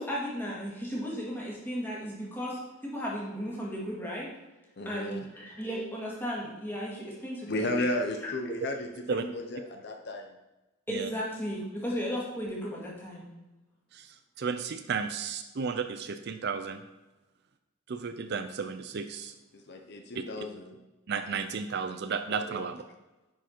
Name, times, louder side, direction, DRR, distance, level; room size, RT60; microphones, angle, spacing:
voice 1, 0.0-4.3 4.9-7.8 8.2-8.3 10.9-13.3, equal, 10° left, -5 dB, 2.0 m, -35 dB
voice 2, 4.8-5.2 7.5-10.3 19.5-20.8 22.3-22.6, left 1 dB, 50° left, 4 dB, 0.7 m, -34 dB
voice 3, 13.9-16.8 17.9-19.3 20.1-20.2 21.1-22.8, right 5 dB, 50° right, 8 dB, 0.4 m, -33 dB
10.0 x 4.8 x 4.4 m, 1.1 s
head